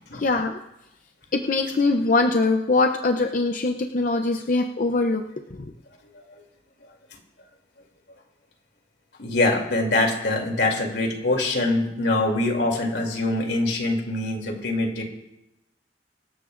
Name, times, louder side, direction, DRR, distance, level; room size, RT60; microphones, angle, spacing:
voice 1, 0.2-0.6 1.3-5.2 5.6-5.7, left 3 dB, 50° left, 4 dB, 0.7 m, -22 dB
voice 2, 9.2-15.0, left 2 dB, 85° left, 2 dB, 2.9 m, -24 dB
24.5 x 13.0 x 2.5 m, 0.90 s
head